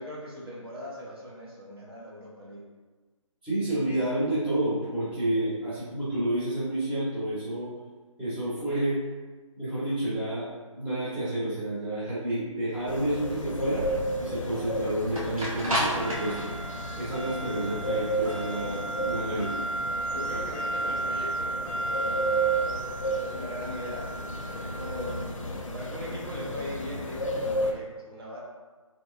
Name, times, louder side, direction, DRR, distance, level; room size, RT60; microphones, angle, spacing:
voice 1, 0.0-2.7 5.3-5.5 20.1-22.9 23.2-24.1 24.5-25.2 25.7-28.4, equal, 45° right, -5 dB, 0.7 m, -40 dB
voice 2, 3.4-7.7 8.2-9.0 9.6-13.8 14.2-16.4 16.9-19.5, right 1 dB, 5° right, -14 dB, 0.9 m, -29 dB
sound 1, 12.7-26.8, right 2 dB, 85° right, 1.3 m, -34 dB
sound 2, 12.9-27.7, right 1 dB, 65° left, 0.5 m, -33 dB
3.1 x 2.9 x 2.5 m, 1.3 s
figure-of-eight pair, 145°, 17 cm